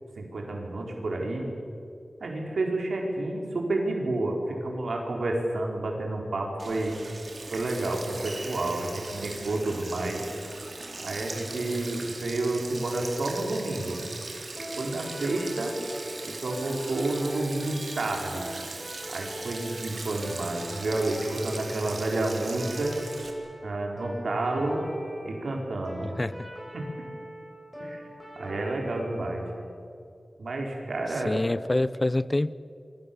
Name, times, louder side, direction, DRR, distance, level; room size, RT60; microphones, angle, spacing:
voice 1, 0.2-1.4 2.2-6.9 7.5-10.3 11.0-14.0 14.8-15.7 16.2-18.4 19.1-23.0 23.6-24.9 25.2-26.1 26.7-26.9 27.8-28.0 28.3-29.4 30.4-31.4, right 2 dB, 85° right, 1 dB, 4.8 m, -30 dB
Sink (filling or washing), 6.6-23.3, right 3 dB, 60° right, 3.7 m, -39 dB
sound 1, 14.6-29.4, equal, ahead, 7.2 m, -41 dB
voice 2, 31.2-32.5, left 2 dB, 25° left, 18 dB, 0.6 m, -26 dB
28.0 x 24.0 x 7.2 m, 2.6 s
wide cardioid pair, 100°, 0 cm